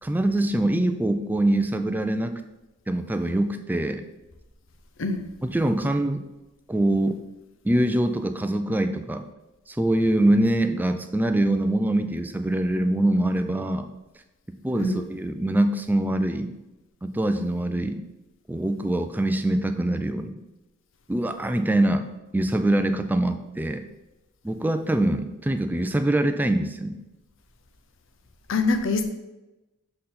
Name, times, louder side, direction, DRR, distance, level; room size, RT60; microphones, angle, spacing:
voice 1, 0.0-2.3 2.9-4.1 5.5-6.2 6.7-7.2 7.6-9.2 9.7-13.9 14.6-16.6 17.0-18.0 18.5-20.4 21.1-22.1 22.3-23.8 24.4-27.0, right 1 dB, 10° right, 7 dB, 0.3 m, -24 dB
voice 2, 28.5-29.0, left 3 dB, 60° left, 7 dB, 0.7 m, -24 dB
7.6 x 3.9 x 4.2 m, 1.0 s
head